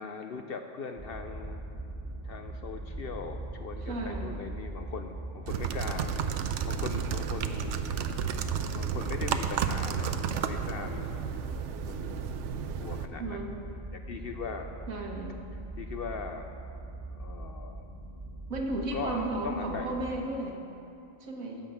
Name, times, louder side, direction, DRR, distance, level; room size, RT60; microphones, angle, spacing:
voice 1, 0.0-1.6 2.2-6.1 6.6-7.9 8.6-11.2 11.9-12.3 12.8-13.4 13.9-14.7 15.8-16.5 17.1-17.9 18.9-20.0, left 5 dB, 60° left, 6 dB, 0.6 m, -40 dB
sound 1, 1.0-20.1, right 1 dB, 20° right, 1.1 m, -41 dB
voice 2, 3.8-4.4 13.2-13.5 14.9-15.4 18.5-20.6 21.2-21.6, right 2 dB, 90° right, 0 dB, 1.8 m, -34 dB
sound 2, 5.5-13.0, right 7 dB, 70° right, 0.9 m, -32 dB
15.5 x 5.3 x 7.0 m, 2.7 s
omnidirectional pair, 1.4 m